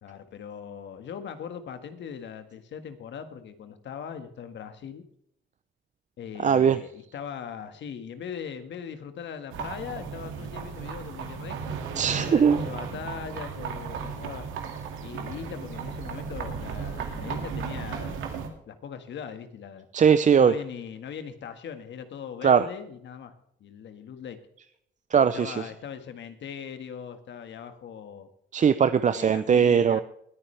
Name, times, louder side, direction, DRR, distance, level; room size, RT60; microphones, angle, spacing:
voice 1, 0.0-5.0 6.2-14.5 15.0-18.2 18.7-19.9 20.4-23.3 23.6-24.4 25.3-28.3 29.1-30.0, left 7 dB, 65° left, 9 dB, 1.7 m, -40 dB
voice 2, 6.4-6.8 12.0-12.6 19.9-20.5 22.4-22.7 25.1-25.7 28.5-30.0, right 7 dB, 40° right, 12 dB, 0.6 m, -20 dB
Horse-drawn carriage - Approach and stop, 9.5-18.5, right 6 dB, 90° right, 2.1 m, -35 dB
20.5 x 9.9 x 3.3 m, 0.72 s
cardioid pair, 90°, 20 cm